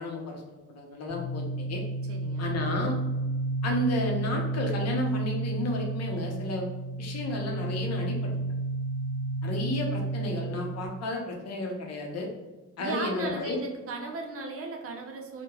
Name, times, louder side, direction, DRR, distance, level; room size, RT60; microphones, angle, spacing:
voice 1, 0.0-1.8 2.4-3.0 3.6-6.7 7.0-8.3 9.4-12.3 12.8-13.6, left 2 dB, 55° left, 1 dB, 0.7 m, -32 dB
sound 1, 1.1-10.9, right 2 dB, 15° right, 1.4 m, -31 dB
voice 2, 2.1-2.5 12.8-15.4, right 3 dB, 50° right, 2 dB, 0.6 m, -36 dB
3.0 x 2.1 x 2.2 m, 1.2 s
cardioid pair, 90°, 30 cm